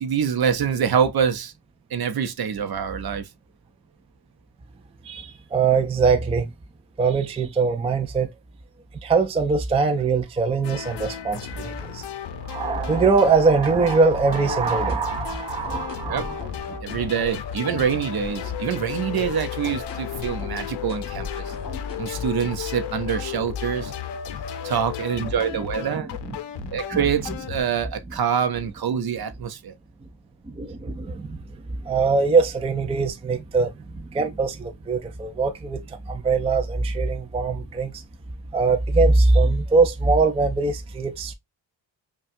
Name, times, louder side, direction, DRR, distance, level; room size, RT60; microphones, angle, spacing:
voice 1, 0.0-1.5 1.9-3.3 16.1-16.2 16.8-21.5 22.0-23.9 24.6-26.1 26.7-29.7, right 8 dB, 55° right, 0.7 m, -25 dB
voice 2, 5.0-6.5 7.0-8.3 9.0-12.0 12.4-16.4 16.7-16.8 25.9-26.0 30.5-31.4 31.8-38.0 38.5-41.3, right 4 dB, 15° right, 0.4 m, -22 dB
sound 1, 10.6-27.6, left 9 dB, 65° left, 0.6 m, -34 dB
sound 2, 14.4-22.4, left 4 dB, 45° left, 1.3 m, -39 dB
5.6 x 2.3 x 2.5 m
wide cardioid pair, 150°, 45 cm